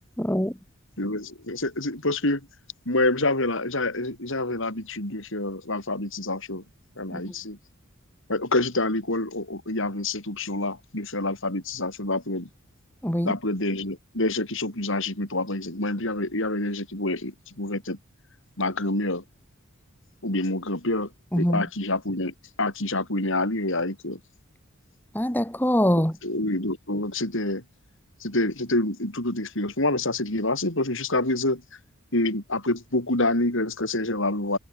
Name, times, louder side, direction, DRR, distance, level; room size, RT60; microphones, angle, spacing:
voice 1, 0.2-0.5 7.1-7.2 13.0-13.3 21.3-21.6 25.1-26.1, equal, 10° left, 4.0 m, -23 dB
voice 2, 1.0-2.4 2.9-6.6 7.0-7.6 8.3-12.5 13.2-18.0 18.6-19.2 20.2-21.1 21.3-24.2 26.2-27.6 28.2-31.6 32.1-34.6, left 2 dB, 65° left, 6.5 m, -27 dB
head